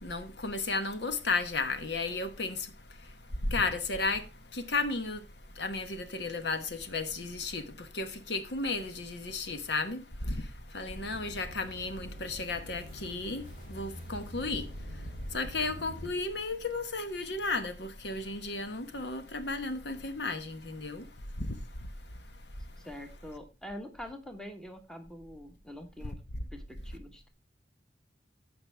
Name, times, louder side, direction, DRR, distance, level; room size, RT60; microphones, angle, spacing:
voice 1, 0.0-2.6 3.5-4.2 4.5-5.2 5.6-10.4 10.7-13.4 13.7-14.7 15.3-21.1 21.4-21.5, left 3 dB, 65° left, 1.1 m, -34 dB
sound 1, 10.9-16.1, equal, 45° left, 5.4 m, -45 dB
voice 2, 22.8-26.2 26.5-27.3, left 1 dB, 5° left, 1.2 m, -45 dB
15.0 x 5.4 x 3.3 m
head